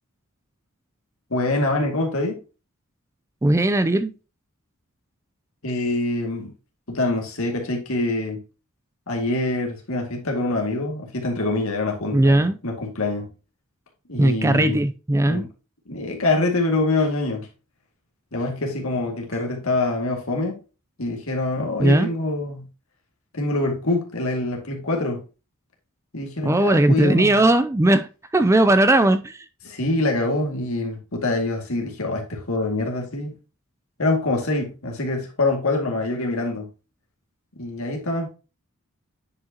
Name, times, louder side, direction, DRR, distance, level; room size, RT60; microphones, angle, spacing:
voice 1, 1.3-2.4 5.6-6.5 6.9-8.4 9.1-13.3 14.1-14.8 15.3-15.5 15.9-17.5 18.3-20.5 21.0-22.7 23.3-25.2 26.1-27.4 29.6-33.3 34.0-36.7 37.6-38.3, left 2 dB, 70° left, 2.2 m, -25 dB
voice 2, 3.4-4.1 12.1-12.6 14.2-15.5 21.8-22.1 26.4-28.1 28.3-29.4, right 1 dB, 15° right, 0.4 m, -18 dB
9.6 x 5.2 x 2.9 m
head